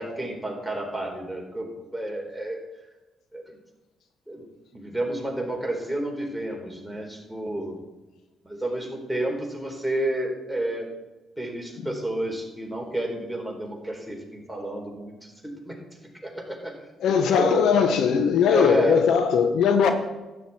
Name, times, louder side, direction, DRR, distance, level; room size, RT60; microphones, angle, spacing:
voice 1, 0.0-2.6 3.3-3.4 4.3-4.4 4.7-7.8 8.4-10.9 11.4-15.8 16.2-16.7 17.0-18.0 18.5-19.0, right 1 dB, ahead, 0 dB, 4.3 m, -30 dB
voice 2, 17.0-19.9, left 6 dB, 75° left, 7 dB, 1.0 m, -20 dB
12.5 x 10.5 x 4.4 m, 1.1 s
supercardioid pair, 55°, 0 cm